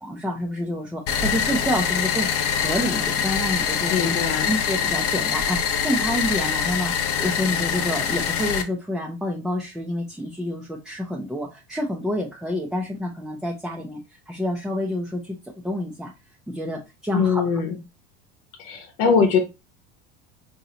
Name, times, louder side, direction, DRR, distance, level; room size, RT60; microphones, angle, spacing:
voice 1, 0.0-4.0 4.5-15.4 15.6-16.1 16.5-17.4, equal, ahead, -1 dB, 0.5 m, -28 dB
sound 1, 1.1-8.6, left 7 dB, 50° left, 0.7 m, -24 dB
voice 2, 3.9-4.5 17.1-17.8 18.6-19.4, left 6 dB, 75° left, 6 dB, 0.9 m, -21 dB
3.9 x 2.7 x 2.8 m, 0.26 s
supercardioid pair, 105°, 31 cm